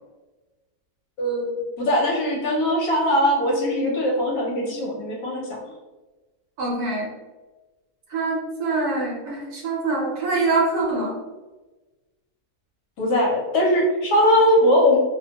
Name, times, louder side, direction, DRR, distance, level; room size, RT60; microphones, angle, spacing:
voice 1, 1.2-1.5 1.8-5.6 13.0-15.0, equal, 70° left, -2 dB, 1.0 m, -20 dB
voice 2, 6.6-7.1 8.1-11.2, right 3 dB, 70° right, -2 dB, 1.1 m, -24 dB
2.7 x 2.1 x 2.7 m, 1.2 s
omnidirectional pair, 1.8 m